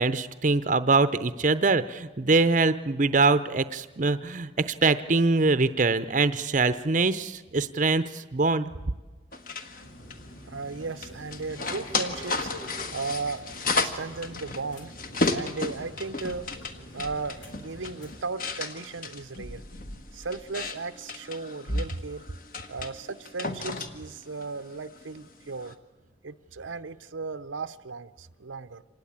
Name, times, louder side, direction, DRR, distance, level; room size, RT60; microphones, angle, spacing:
voice 1, 0.0-8.7, right 3 dB, 40° right, 12 dB, 0.7 m, -23 dB
sound 1, 9.3-25.7, left 3 dB, 45° left, 1.5 m, -34 dB
sound 2, 9.8-18.2, equal, 90° left, 3.5 m, -45 dB
voice 2, 10.5-12.5 12.9-14.9 15.2-16.5 16.9-19.6 20.1-22.2 22.7-25.8 26.2-28.8, right 4 dB, 90° right, 12 dB, 0.8 m, -36 dB
26.0 x 19.0 x 8.8 m, 1.2 s
head